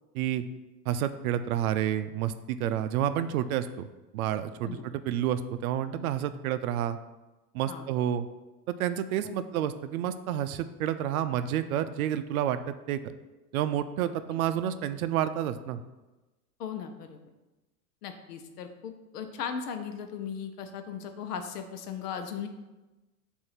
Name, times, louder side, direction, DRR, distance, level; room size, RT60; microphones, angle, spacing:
voice 1, 0.9-3.9 4.1-7.0 7.5-8.3 8.7-13.0 13.5-15.8, right 10 dB, 60° right, 11 dB, 0.6 m, -29 dB
voice 2, 16.6-17.2 18.0-22.5, left 7 dB, 70° left, 7 dB, 0.9 m, -37 dB
6.6 x 2.7 x 5.7 m, 1.1 s
hypercardioid pair, 100°, 48 cm